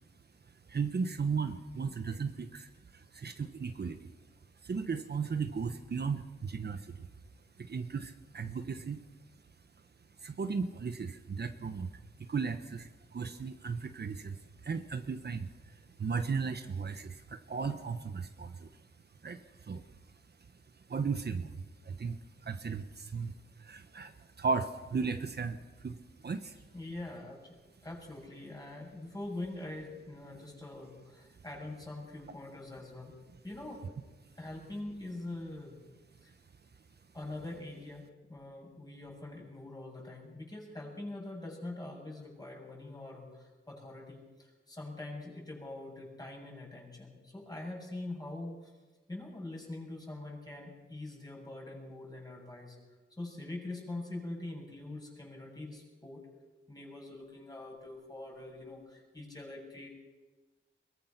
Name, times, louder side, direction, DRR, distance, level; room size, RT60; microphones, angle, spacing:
voice 1, 0.5-4.1 4.6-7.1 7.6-9.0 10.2-18.8 19.2-19.9 20.8-26.6, right 5 dB, 55° right, 8 dB, 1.1 m, -36 dB
voice 2, 26.7-27.6 27.8-33.1 33.4-33.8 34.4-35.8 36.2-36.3 37.1-48.7 49.1-52.8 53.2-56.2 56.7-59.9, left 2 dB, 20° left, -1 dB, 7.6 m, -44 dB
22.5 x 20.0 x 6.0 m, 1.2 s
wide cardioid pair, 95°, 21 cm